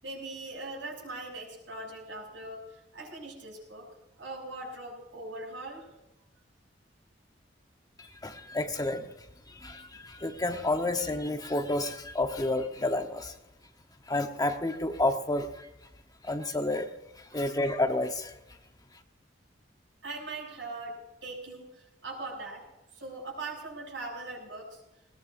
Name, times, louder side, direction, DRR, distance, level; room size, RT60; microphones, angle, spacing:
voice 1, 0.0-3.9 4.2-5.9 17.3-17.6 20.0-22.7 22.9-24.8, right 2 dB, 85° right, -1 dB, 7.3 m, -41 dB
voice 2, 8.0-9.1 9.5-13.3 14.1-15.7 16.2-16.9 17.2-18.3, left 2 dB, 20° left, 5 dB, 1.1 m, -30 dB
20.5 x 19.0 x 2.6 m, 0.90 s
head